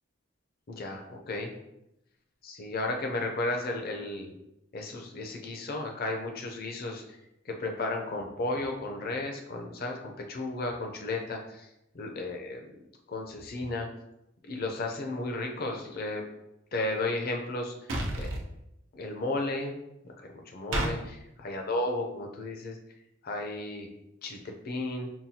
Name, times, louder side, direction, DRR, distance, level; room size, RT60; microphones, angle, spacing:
voice 1, 0.7-1.5 2.4-4.3 4.7-7.0 7.5-11.7 11.9-12.7 13.1-13.9 14.5-16.2 16.7-17.7 18.2-18.3 18.9-19.8 20.2-22.8 23.2-23.9 24.2-25.1, left 2 dB, 50° left, 2 dB, 0.5 m, -34 dB
sound 1, 17.9-18.4 20.7-20.9, right 1 dB, 85° right, 0.7 m, -29 dB
5.6 x 2.3 x 2.7 m, 0.86 s
head